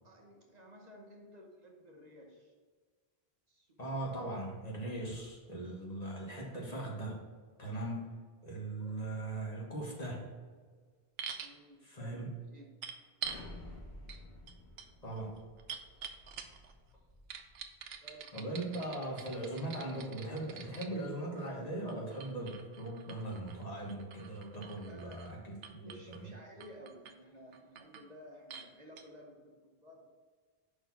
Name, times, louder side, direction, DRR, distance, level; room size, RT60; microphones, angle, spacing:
voice 1, 0.0-2.5 3.5-4.0 7.8-7.9 8.8-9.0 11.2-12.7 18.0-18.6 24.9-25.3 25.7-30.1, equal, 45° right, 0 dB, 1.0 m, -55 dB
voice 2, 3.8-7.2 7.6-8.0 8.4-10.4 11.8-12.4 15.0-15.3 18.3-26.3, right 1 dB, 40° left, -3 dB, 1.6 m, -39 dB
sound 1, 11.2-11.5 12.8-13.5 14.1-14.2 14.5-16.7 17.3-20.9 21.9-25.3 25.6-26.2 26.6-27.1 27.5-28.1 28.5-28.7 29.0-29.1, right 7 dB, 80° right, 0.9 m, -46 dB
Explosion, 13.2-17.9, left 1 dB, 60° left, 2.3 m, -52 dB
5.3 x 4.3 x 5.8 m, 1.5 s
omnidirectional pair, 1.0 m